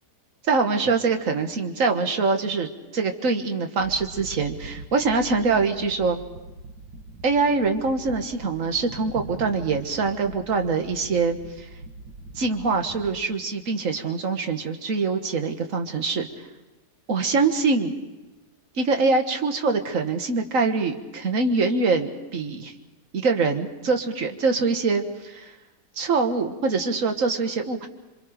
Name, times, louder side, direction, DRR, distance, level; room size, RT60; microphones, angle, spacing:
voice 1, 0.4-6.2 7.2-11.7 12.4-16.3 17.1-17.9 18.8-22.7 23.1-25.5 26.0-27.9, right 4 dB, 50° right, 5 dB, 1.9 m, -24 dB
sound 1, 3.8-13.2, right 3 dB, 90° right, 1.9 m, -42 dB
27.5 x 24.5 x 5.1 m, 1.1 s
omnidirectional pair, 1.8 m